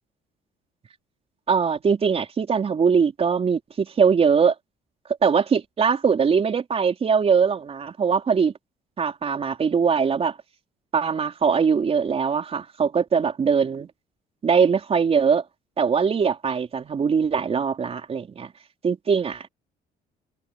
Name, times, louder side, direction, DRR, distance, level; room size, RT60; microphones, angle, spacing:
voice 1, 1.5-4.5 5.2-8.5 9.0-10.3 10.9-13.9 14.4-15.4 15.8-18.5 18.8-19.5, right 6 dB, 35° right, 4.5 m, -21 dB
cardioid pair, 110°, 17 cm